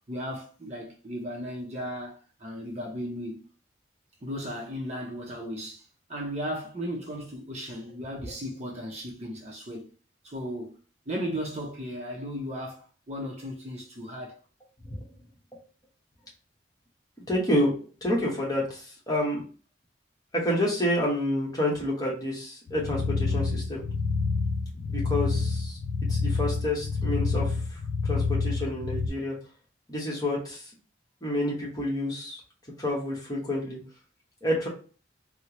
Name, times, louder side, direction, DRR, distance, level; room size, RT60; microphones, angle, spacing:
voice 1, 0.1-3.5 4.2-9.9 10.2-10.7 11.1-14.4, equal, 35° right, 0.6 m, -36 dB
voice 2, 17.3-17.7 18.0-19.4 20.3-23.8 24.8-25.8 26.1-27.5 28.0-29.4 29.9-30.7 31.2-32.4 32.8-33.8 34.4-34.7, left 1 dB, 20° left, 1.1 m, -28 dB
sound 1, 22.7-29.1, left 4 dB, 55° left, 0.4 m, -28 dB
4.3 x 2.0 x 2.9 m
head